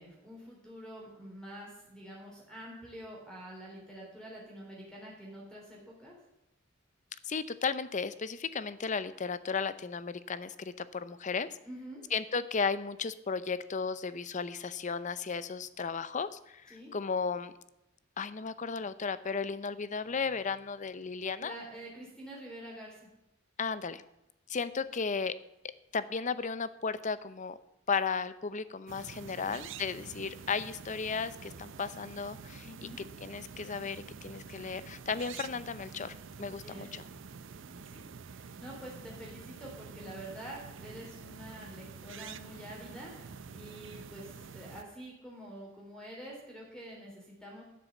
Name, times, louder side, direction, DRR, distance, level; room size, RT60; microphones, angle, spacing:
voice 1, 0.0-6.1 11.6-12.0 16.7-16.9 21.4-23.1 24.7-24.8 29.3-29.6 32.6-33.0 36.4-36.9 37.6-47.6, right 1 dB, 5° left, -3 dB, 3.5 m, -47 dB
voice 2, 7.2-11.5 12.1-17.5 18.2-21.5 23.6-24.0 24.5-25.3 25.9-27.6 27.9-32.7 33.2-37.0, left 5 dB, 40° left, 14 dB, 0.6 m, -35 dB
sound 1, 28.9-44.8, right 5 dB, 65° right, 0.6 m, -48 dB
12.0 x 7.0 x 7.2 m, 0.89 s
head